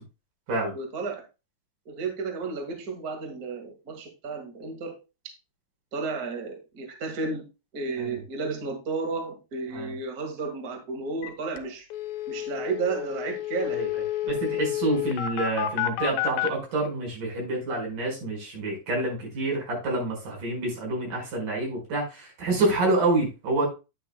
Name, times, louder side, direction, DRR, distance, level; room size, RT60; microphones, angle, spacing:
voice 1, 0.7-1.2 1.8-5.0 5.9-7.4 7.7-11.9 12.3-13.9, right 4 dB, 85° right, 4 dB, 0.8 m, -32 dB
sound 1, 11.2-11.3 11.6-11.7 11.9-16.5, left 12 dB, 80° left, 3.0 m, -30 dB
voice 2, 13.7-23.7, right 2 dB, 50° right, -1 dB, 6.1 m, -28 dB
9.7 x 9.1 x 2.2 m, 0.28 s
omnidirectional pair, 5.1 m